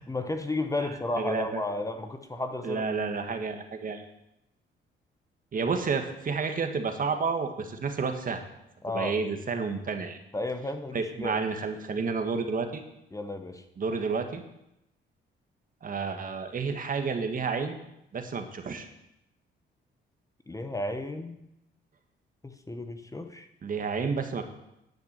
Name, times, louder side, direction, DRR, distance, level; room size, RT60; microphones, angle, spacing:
voice 1, 0.1-2.8 8.8-9.2 10.3-11.4 13.1-13.6 20.5-21.4 22.4-23.5, left 2 dB, 15° left, 7 dB, 1.0 m, -33 dB
voice 2, 0.8-1.6 2.6-4.0 5.5-8.4 8.9-10.2 10.9-12.8 13.8-14.4 15.8-17.8 18.1-18.9 23.6-24.4, right 5 dB, 45° right, 6 dB, 1.5 m, -30 dB
10.5 x 6.0 x 8.0 m, 0.84 s
cardioid pair, 90°, 20 cm